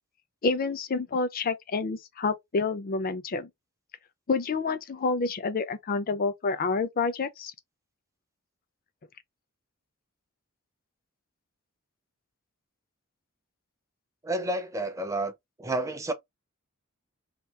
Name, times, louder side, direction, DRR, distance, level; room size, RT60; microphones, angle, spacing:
voice 1, 0.4-3.5 4.3-7.5, left 4 dB, 40° left, 0.5 m, -28 dB
voice 2, 14.2-15.3 15.6-16.1, right 2 dB, 15° right, 0.5 m, -30 dB
2.9 x 2.3 x 3.4 m
head